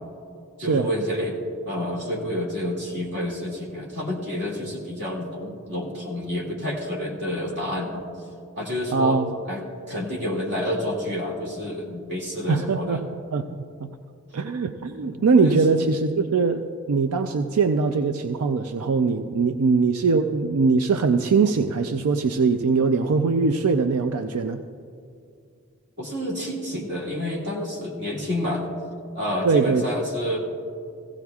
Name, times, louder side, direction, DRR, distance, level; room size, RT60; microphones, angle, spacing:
voice 1, 0.6-1.4 1.7-8.0 8.6-9.2 9.5-9.6 9.9-13.0 15.4-15.6 26.0-28.7 29.1-30.4, left 1 dB, 50° right, -3 dB, 2.3 m, -29 dB
voice 2, 8.9-9.4 12.5-13.0 13.3-13.9 14.3-16.6 16.9-24.6 29.4-29.9, right 4 dB, 90° right, 8 dB, 0.4 m, -22 dB
16.5 x 16.0 x 2.4 m, 2.4 s
head